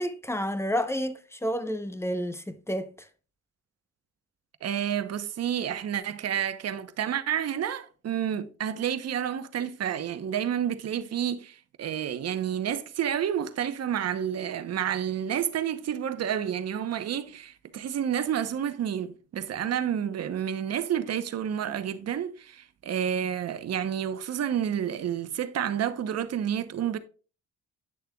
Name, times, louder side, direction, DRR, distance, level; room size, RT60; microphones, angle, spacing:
voice 1, 0.0-3.1, equal, 10° left, 0.8 m, -30 dB
voice 2, 4.6-27.0, right 9 dB, 55° right, 0.9 m, -30 dB
10.0 x 6.6 x 2.3 m
cardioid pair, 90°, 30 cm